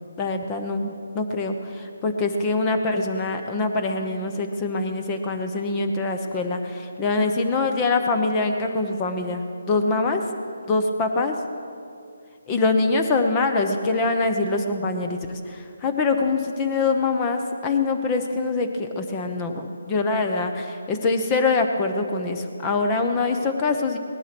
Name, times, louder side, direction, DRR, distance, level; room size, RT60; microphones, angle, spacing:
voice 1, 0.2-10.2 10.7-11.4 12.5-24.0, left 3 dB, 15° left, 5 dB, 0.9 m, -24 dB
18.0 x 11.5 x 6.1 m, 2.4 s
hypercardioid pair, 165°, 0 cm